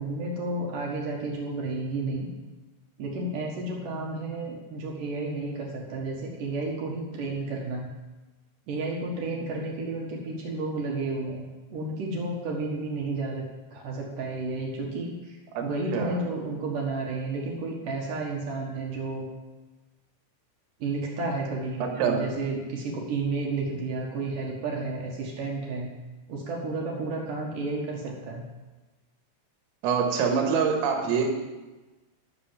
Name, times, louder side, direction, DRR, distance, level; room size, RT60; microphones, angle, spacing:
voice 1, 0.0-2.3 3.0-7.9 8.7-13.4 13.7-19.2 20.8-25.9 26.3-28.4, right 3 dB, 65° right, -1 dB, 2.1 m, -32 dB
voice 2, 15.6-16.2 21.8-22.3 29.8-31.3, right 6 dB, 85° right, 3 dB, 4.3 m, -25 dB
14.0 x 6.9 x 7.4 m, 1.2 s
omnidirectional pair, 6.0 m